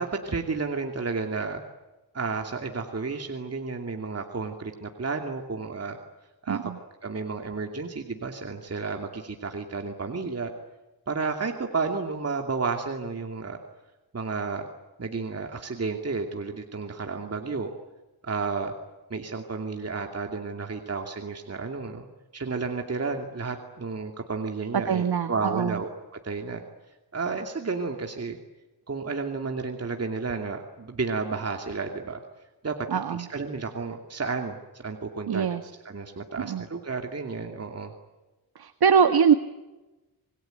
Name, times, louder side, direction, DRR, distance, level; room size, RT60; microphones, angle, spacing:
voice 1, 0.0-1.6 2.1-6.0 6.4-6.6 7.0-10.5 11.1-13.6 14.1-14.7 15.0-17.7 18.2-18.7 19.1-22.1 22.3-25.9 26.2-26.6 27.1-28.4 28.9-32.2 32.6-35.5 35.8-37.9, right 4 dB, 35° right, 3 dB, 2.7 m, -32 dB
voice 2, 6.5-6.8 24.9-25.8 32.9-33.3 35.3-35.6 36.4-36.6 38.5-39.3, right 7 dB, 65° right, 9 dB, 1.7 m, -23 dB
27.5 x 21.5 x 9.3 m, 1.1 s
wide cardioid pair, 110°, 40 cm